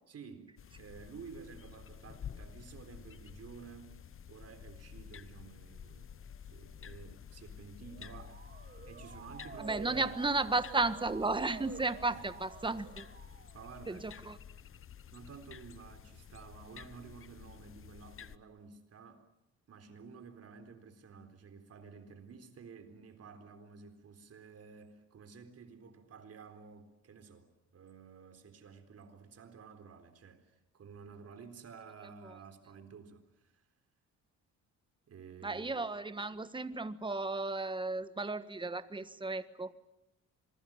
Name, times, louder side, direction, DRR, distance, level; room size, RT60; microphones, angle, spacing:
voice 1, 0.1-4.0 4.3-6.1 6.5-10.1 12.1-12.3 13.5-14.1 15.1-19.3 19.7-33.6 35.1-35.7, right 5 dB, 55° right, 4.0 m, -52 dB
sound 1, 0.6-18.4, left 8 dB, 45° left, 1.0 m, -51 dB
Motor vehicle (road) / Siren, 7.8-13.7, right 5 dB, 35° right, 1.8 m, -50 dB
voice 2, 9.6-13.1 13.9-14.4 32.2-32.3 35.4-39.7, right 3 dB, 15° right, 1.5 m, -34 dB
26.5 x 21.5 x 9.0 m
cardioid pair, 90°, 30 cm